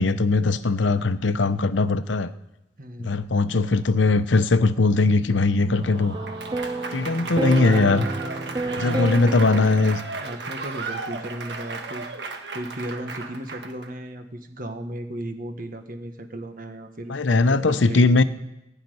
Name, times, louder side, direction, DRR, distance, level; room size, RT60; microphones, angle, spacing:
voice 1, 0.0-2.3 3.0-6.2 6.9-8.1 8.8-10.0 17.1-18.2, left 3 dB, 85° left, 12 dB, 0.8 m, -20 dB
voice 2, 2.8-3.3 8.6-9.7 10.2-12.1 12.5-18.2, right 1 dB, 45° right, 6 dB, 1.5 m, -35 dB
sound 1, 5.6-10.1, right 2 dB, 25° right, 0.4 m, -30 dB
Applause / Crowd, 5.7-13.9, right 3 dB, 65° right, 1.4 m, -35 dB
16.0 x 5.8 x 9.6 m, 0.91 s
head